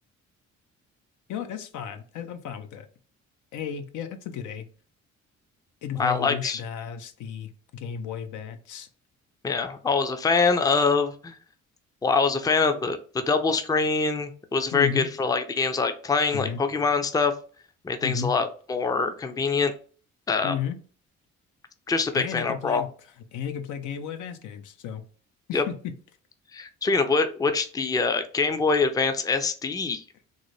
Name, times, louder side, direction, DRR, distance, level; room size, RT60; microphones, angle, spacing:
voice 1, 1.3-2.9 3.5-4.7 5.8-8.9 14.7-15.1 16.3-16.6 18.0-18.3 20.4-20.8 22.1-22.9 23.3-25.0 25.5-25.9, left 8 dB, 80° left, 8 dB, 0.6 m, -33 dB
voice 2, 6.0-6.6 9.4-11.3 12.0-17.3 17.8-19.7 20.3-20.5 21.9-22.8 25.5-25.6 26.5-30.0, left 4 dB, 15° left, 9 dB, 0.4 m, -24 dB
3.9 x 2.1 x 3.1 m, 0.41 s
cardioid pair, 90°, 30 cm